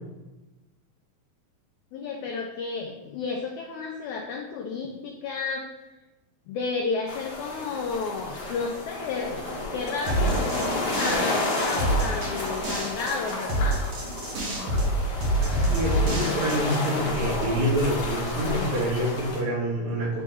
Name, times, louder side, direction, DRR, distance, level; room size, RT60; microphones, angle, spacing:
voice 1, 1.9-5.7 6.5-9.4 9.7-13.8 16.1-16.6, left 4 dB, 90° left, 2 dB, 1.6 m, -32 dB
sound 1, 7.1-19.4, left 2 dB, 55° left, 2.1 m, -31 dB
sound 2, 10.1-16.9, right 1 dB, 55° right, 1.7 m, -27 dB
voice 2, 15.4-20.2, right 1 dB, 80° right, -6 dB, 3.6 m, -27 dB
8.8 x 3.1 x 3.5 m, 1.1 s
omnidirectional pair, 4.0 m